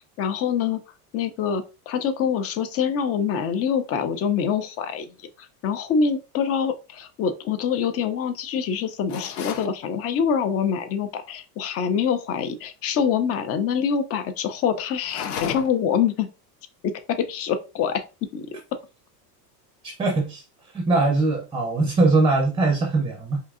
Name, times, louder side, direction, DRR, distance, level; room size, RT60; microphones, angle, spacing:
voice 1, 0.2-0.8 1.1-5.1 5.6-16.3 16.8-18.0 18.3-18.5, left 7 dB, 30° left, 10 dB, 0.5 m, -25 dB
sound 1, 9.1-9.7 15.0-15.9, left 8 dB, 80° left, 0.7 m, -33 dB
voice 2, 20.0-20.4 20.7-23.4, right 3 dB, 10° right, 2 dB, 0.6 m, -21 dB
4.4 x 2.8 x 2.4 m, 0.30 s
supercardioid pair, 125°, 48 cm